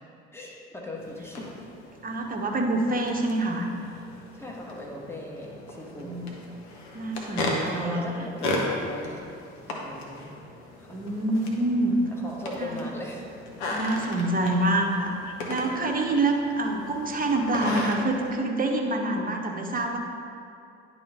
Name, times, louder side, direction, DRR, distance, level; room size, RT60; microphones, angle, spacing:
voice 1, 0.3-1.5 4.3-6.2 7.7-9.3 9.7-10.3 10.8-11.0 12.2-13.2 13.8-13.9, left 1 dB, 5° left, -2 dB, 1.4 m, -39 dB
sound 1, 1.0-18.3, left 2 dB, 75° left, 1.0 m, -36 dB
voice 2, 2.0-3.7 6.0-6.2 6.9-8.1 10.9-12.0 12.5-12.8 13.7-20.0, right 2 dB, 25° right, 1 dB, 1.0 m, -26 dB
10.5 x 3.9 x 3.5 m, 2.5 s
figure-of-eight pair, 50°, 33 cm